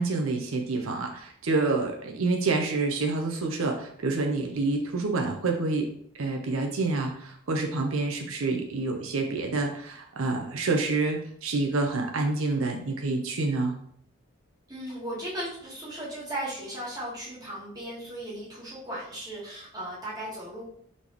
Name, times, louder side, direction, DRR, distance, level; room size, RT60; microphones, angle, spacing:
voice 1, 0.0-5.9 6.1-13.8, right 3 dB, 80° right, 2 dB, 0.6 m, -28 dB
voice 2, 14.7-20.6, right 1 dB, 20° right, -8 dB, 1.6 m, -36 dB
4.1 x 3.4 x 2.9 m, 0.64 s
head